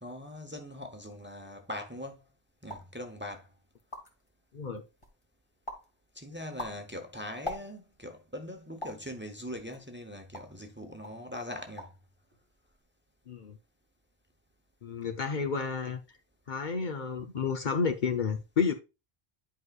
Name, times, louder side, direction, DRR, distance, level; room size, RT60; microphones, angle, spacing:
voice 1, 0.0-2.2 2.6-3.5 6.1-11.9, left 1 dB, 10° right, 0.9 m, -41 dB
sound 1, 2.6-3.0 3.5-3.6 3.8-4.3 4.8-5.2 5.7-5.9 6.4-8.0 8.8-9.1 9.7-10.6 11.0-11.2 11.6-12.1 12.3-12.8, left 1 dB, 30° left, 1.5 m, -42 dB
voice 2, 14.8-16.0 16.5-18.7, left 5 dB, 50° left, 0.9 m, -31 dB
10.5 x 4.8 x 2.4 m
omnidirectional pair, 1.0 m